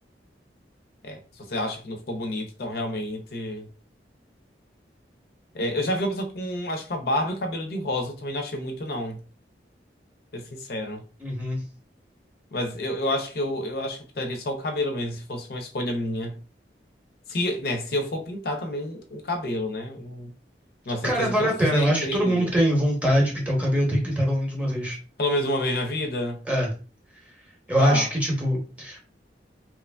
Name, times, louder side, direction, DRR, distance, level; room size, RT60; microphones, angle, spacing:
voice 1, 1.5-3.7 5.5-9.2 10.3-11.0 12.5-16.4 17.3-20.3 20.9-22.5 25.2-26.4 27.8-28.1, left 1 dB, 60° left, 0.5 m, -29 dB
voice 2, 11.2-11.6 21.0-25.0 26.5-26.7 27.7-29.0, equal, 10° right, 0.7 m, -23 dB
2.8 x 2.4 x 2.2 m
head